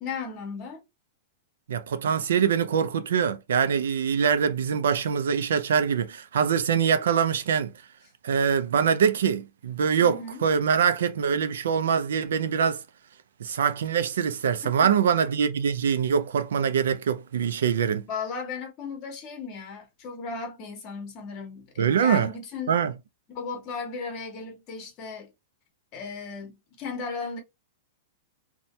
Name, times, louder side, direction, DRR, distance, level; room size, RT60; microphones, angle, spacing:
voice 1, 0.0-0.8 10.0-10.4 14.6-14.7 18.1-22.8 23.3-25.3 25.9-27.4, left 5 dB, 30° left, 1.1 m, -36 dB
voice 2, 1.7-7.7 8.2-12.8 13.4-18.0 21.8-22.3 22.7-22.9, right 7 dB, 90° right, 0.4 m, -24 dB
2.7 x 2.2 x 3.0 m
supercardioid pair, 160°, 0 cm